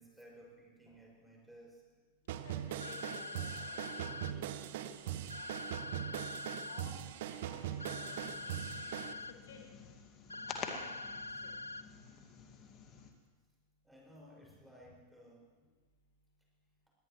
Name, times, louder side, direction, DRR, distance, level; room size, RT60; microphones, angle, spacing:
voice 1, 0.0-1.8 13.8-15.5, equal, 5° right, -3 dB, 6.1 m, -57 dB
voice 2, 2.3-6.3 6.6-7.0 7.3-8.1 8.4-8.6 9.4-9.6 10.3-11.5, left 5 dB, 60° left, 2 dB, 2.2 m, -56 dB
sound 1, 2.3-9.1, right 11 dB, 55° right, 0.8 m, -41 dB
sound 2, 2.8-4.3 5.3-6.8 7.8-9.3 10.3-11.8, left 3 dB, 85° left, 0.5 m, -44 dB
sound 3, 7.6-13.1, left 6 dB, 30° left, 1.9 m, -49 dB
22.0 x 18.5 x 3.2 m, 1.3 s
figure-of-eight pair, 90°, 0 cm